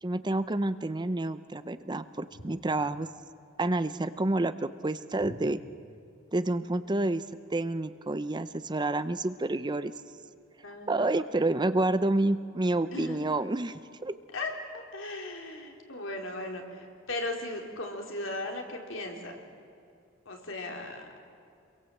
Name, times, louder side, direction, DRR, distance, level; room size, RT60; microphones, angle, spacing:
voice 1, 0.0-3.1 3.6-5.6 6.3-7.2 7.5-9.9 10.9-14.2, right 2 dB, 20° right, 13 dB, 0.7 m, -29 dB
voice 2, 10.6-11.1 12.9-13.3 14.3-19.4 20.3-21.1, left 2 dB, 75° left, 2 dB, 3.9 m, -37 dB
27.0 x 22.5 x 7.8 m, 2.4 s
head